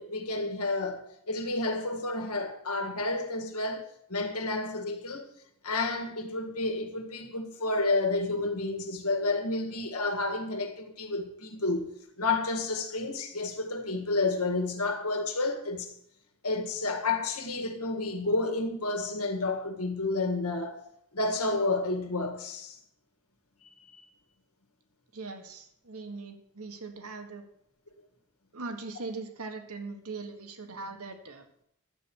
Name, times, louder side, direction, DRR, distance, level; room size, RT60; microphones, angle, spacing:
voice 1, 0.0-5.3 5.6-11.9 12.2-15.9 16.4-20.8 21.1-22.8 23.9-24.0, left 2 dB, 90° left, 2.0 m, -30 dB
voice 2, 25.1-27.4 28.5-31.5, right 3 dB, 75° right, 1.6 m, -40 dB
11.5 x 8.0 x 6.4 m
head